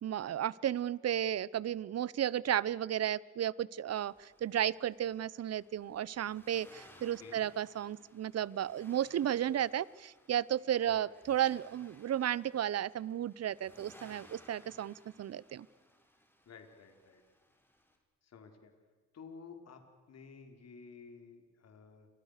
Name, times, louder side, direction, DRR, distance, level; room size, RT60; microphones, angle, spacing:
voice 1, 0.0-15.7, right 10 dB, 55° right, 22 dB, 0.9 m, -33 dB
Accelerating revving vroom, 3.9-18.0, left 1 dB, 5° left, 6.7 m, -62 dB
voice 2, 16.5-17.2 18.2-18.7 19.1-22.1, left 5 dB, 55° left, 5 dB, 4.5 m, -53 dB
29.5 x 25.5 x 6.7 m, 1.3 s
cardioid pair, 90°, 30 cm